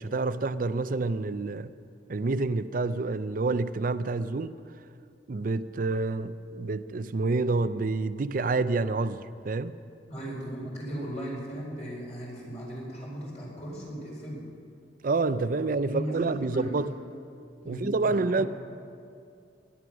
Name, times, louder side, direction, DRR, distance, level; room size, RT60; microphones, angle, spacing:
voice 1, 0.0-1.7 2.1-4.6 5.3-9.8 15.0-16.9 17.7-18.5, right 3 dB, 50° right, 0.5 m, -28 dB
voice 2, 10.0-14.4 15.8-16.8 17.6-18.5, right 1 dB, 40° left, 4.5 m, -37 dB
17.5 x 11.0 x 6.1 m
head